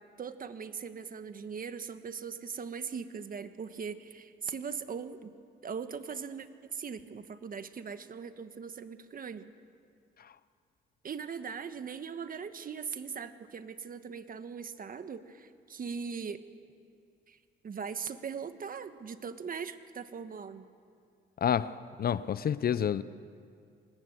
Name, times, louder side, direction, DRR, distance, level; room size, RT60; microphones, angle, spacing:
voice 1, 0.0-5.3 5.6-9.5 11.0-16.4 17.3-17.4 17.6-20.7, right 6 dB, 45° right, 1.5 m, -40 dB
voice 2, 21.4-23.0, left 8 dB, 50° left, 0.7 m, -29 dB
26.5 x 19.5 x 8.0 m
cardioid pair, 90°, 20 cm